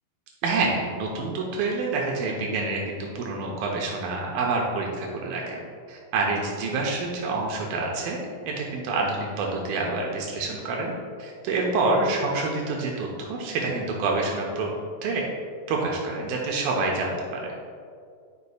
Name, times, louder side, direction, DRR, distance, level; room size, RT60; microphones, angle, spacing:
voice 1, 0.4-5.6 5.9-8.2 8.5-10.9 11.2-14.7 15.0-15.2 15.7-17.5, right 3 dB, 85° right, -1 dB, 2.4 m, -27 dB
9.6 x 5.2 x 2.3 m, 2.2 s
omnidirectional pair, 4.1 m